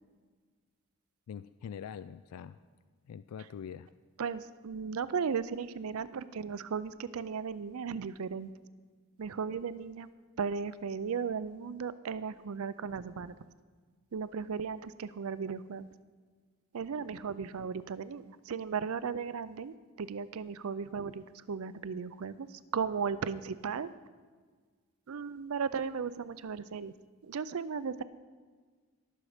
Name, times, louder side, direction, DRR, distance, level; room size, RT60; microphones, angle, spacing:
voice 1, 1.3-2.6 3.1-3.9, left 7 dB, 85° left, 14 dB, 0.3 m, -43 dB
voice 2, 4.2-8.5 9.2-10.1 10.4-13.4 14.1-15.9 16.7-23.9 25.1-26.9 27.2-28.0, right 6 dB, 75° right, 15 dB, 0.5 m, -36 dB
18.5 x 6.4 x 5.0 m, 1.5 s
head